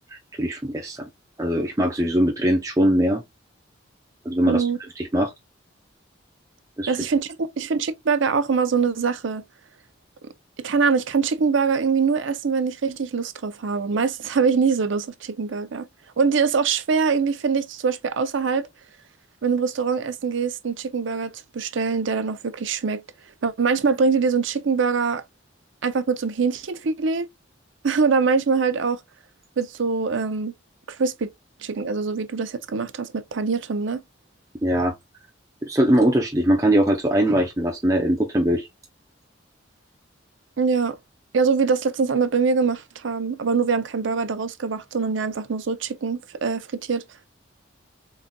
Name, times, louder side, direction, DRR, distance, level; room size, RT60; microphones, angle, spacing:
voice 1, 0.4-1.1 1.4-3.2 4.2-4.7 5.0-5.3 6.8-7.0 34.6-34.9 35.6-38.7, right 1 dB, 15° right, 0.6 m, -21 dB
voice 2, 4.4-4.8 6.9-9.4 10.6-15.9 16.2-18.7 19.4-23.0 23.4-25.2 25.8-27.3 27.8-29.0 29.6-30.5 31.0-31.3 31.6-34.0 40.6-41.0 41.3-47.0, right 5 dB, 80° right, 0.5 m, -23 dB
3.9 x 3.8 x 2.2 m
head